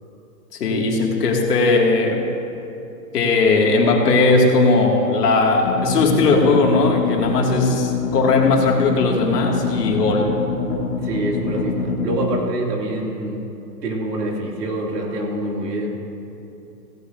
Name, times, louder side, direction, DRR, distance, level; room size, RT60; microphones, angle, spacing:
voice 1, 0.5-2.3 3.1-10.3, left 3 dB, 70° left, 0 dB, 2.3 m, -18 dB
sound 1, 5.6-12.4, left 4 dB, 20° left, 1.0 m, -25 dB
voice 2, 11.0-13.4 13.8-16.0, right 2 dB, 70° right, -1 dB, 2.6 m, -26 dB
16.0 x 16.0 x 2.6 m, 2.8 s
hypercardioid pair, 175°, 49 cm